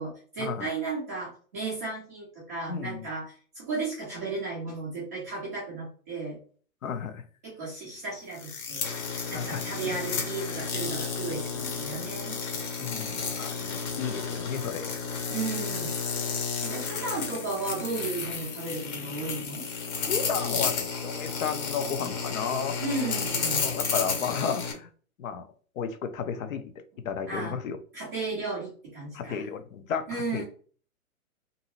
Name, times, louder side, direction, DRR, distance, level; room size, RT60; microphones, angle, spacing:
voice 1, 0.0-6.4 7.4-8.8 9.3-12.4 15.3-16.0 16.6-19.6 22.8-23.7 26.9-27.6 27.9-29.4 30.1-30.4, right 3 dB, 15° right, 0.3 m, -34 dB
voice 2, 2.7-3.1 6.8-7.2 9.3-10.0 12.8-15.0 20.0-22.8 23.6-24.9 25.2-25.5 25.8-26.7 27.0-27.8 29.1-30.4, left 6 dB, 65° left, 0.6 m, -33 dB
sound 1, 8.3-24.7, left 5 dB, 30° left, 0.7 m, -32 dB
2.7 x 2.6 x 2.8 m
hypercardioid pair, 130°, 44 cm